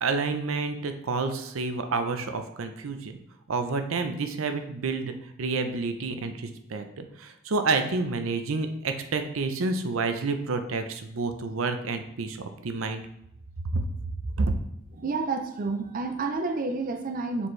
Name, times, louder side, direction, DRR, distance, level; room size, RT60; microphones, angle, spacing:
voice 1, 0.0-3.2 3.5-12.4 12.6-13.0 13.7-13.9 14.4-14.5, right 3 dB, 85° right, 7 dB, 0.6 m, -29 dB
voice 2, 14.9-17.5, right 3 dB, 40° right, 6 dB, 0.4 m, -30 dB
6.9 x 4.4 x 3.2 m, 0.79 s
head